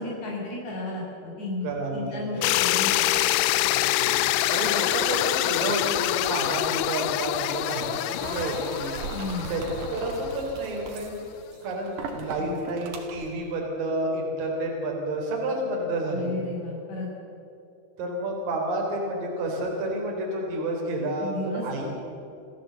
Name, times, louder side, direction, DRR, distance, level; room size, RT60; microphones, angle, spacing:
voice 1, 0.0-1.7 1.9-3.1 9.1-9.5 12.4-12.6 16.1-17.1 21.2-21.9, left 2 dB, 35° left, -3 dB, 7.6 m, -34 dB
voice 2, 1.6-2.5 3.7-8.9 9.5-11.1 11.6-16.3 18.0-21.9, right 1 dB, 45° right, -1 dB, 5.2 m, -30 dB
sound 1, 2.4-10.4, left 15 dB, 80° left, 3.1 m, -25 dB
sound 2, 8.2-13.3, right 5 dB, 65° right, 4.0 m, -38 dB
28.5 x 15.0 x 8.0 m, 2.6 s
omnidirectional pair, 5.7 m